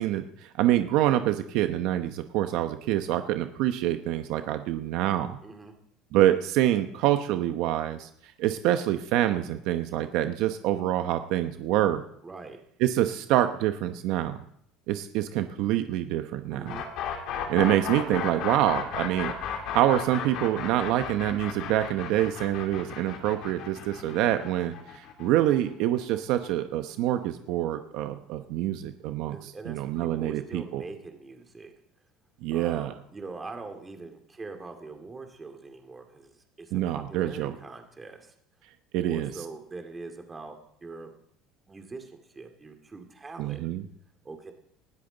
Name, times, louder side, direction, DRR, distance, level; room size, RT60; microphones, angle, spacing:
voice 1, 0.0-5.4 6.1-8.1 8.4-12.0 12.8-14.4 14.9-16.8 17.5-30.8 32.4-32.9 36.7-37.5 38.9-39.4 43.4-43.8, right 13 dB, 65° right, 8 dB, 0.9 m, -26 dB
voice 2, 5.4-5.7 12.2-12.6 16.5-16.9 29.3-31.7 32.5-36.3 36.6-38.3 39.0-41.1 41.7-43.6 44.2-44.5, right 3 dB, 15° right, 5 dB, 2.2 m, -43 dB
sound 1, 16.7-26.5, left 8 dB, 60° left, 3.1 m, -35 dB
19.5 x 13.5 x 4.0 m, 0.70 s
cardioid pair, 135°, 0 cm